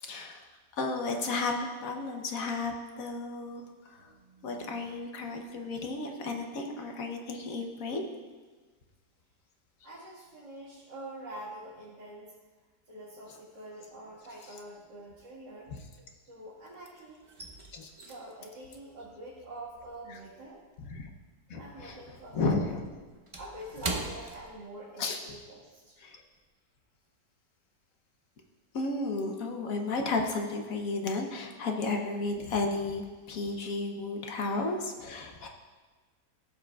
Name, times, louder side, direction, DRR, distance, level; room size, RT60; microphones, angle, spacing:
voice 1, 0.0-0.4 0.7-4.1 4.4-8.0 15.7-15.8 17.7-17.9 20.8-21.1 21.5-22.0 22.3-22.9 25.0-25.2 26.0-26.2 28.7-35.5, left 3 dB, 60° left, 3 dB, 1.2 m, -33 dB
voice 2, 4.0-4.9 9.8-12.3 12.8-15.7 16.2-17.3 18.1-20.6 21.6-22.8 23.3-26.0, right 1 dB, 85° right, -10 dB, 2.4 m, -46 dB
sound 1, 13.8-14.4 14.6-16.6 16.9-21.6 21.9-25.2 25.5-25.7 26.2-26.4, right 2 dB, 35° right, 0.5 m, -42 dB
15.0 x 7.3 x 2.3 m, 1.3 s
omnidirectional pair, 1.9 m